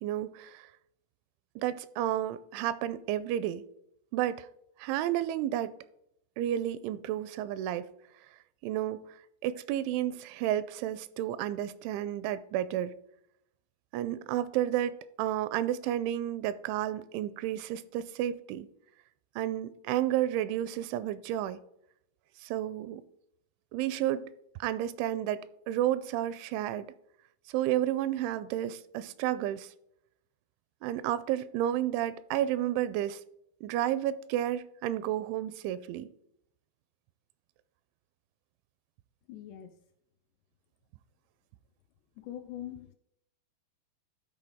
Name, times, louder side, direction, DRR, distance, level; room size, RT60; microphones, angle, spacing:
voice 1, 0.0-0.7 1.6-3.6 4.1-4.5 4.8-5.7 6.4-7.9 8.6-9.0 9.4-12.9 13.9-18.7 19.4-21.6 22.4-23.0 23.7-24.3 24.6-26.9 27.5-29.7 30.8-33.2 33.6-36.1, right 12 dB, 85° right, 2.9 m, -31 dB
voice 2, 39.3-39.8 42.2-42.9, left 11 dB, 80° left, 2.5 m, -42 dB
13.0 x 4.7 x 3.6 m
omnidirectional pair, 5.3 m